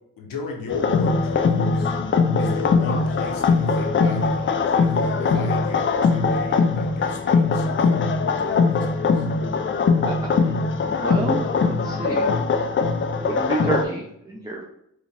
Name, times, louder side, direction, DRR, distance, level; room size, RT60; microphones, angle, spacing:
voice 1, 0.2-1.9 2.4-9.2, left 4 dB, 80° left, 1 dB, 0.9 m, -36 dB
sound 1, 0.7-13.8, left 4 dB, 40° left, 0.4 m, -21 dB
voice 2, 11.0-12.3 13.2-14.6, right 2 dB, 10° right, -1 dB, 0.5 m, -29 dB
4.7 x 2.2 x 3.4 m, 0.75 s
cardioid pair, 85°, 33 cm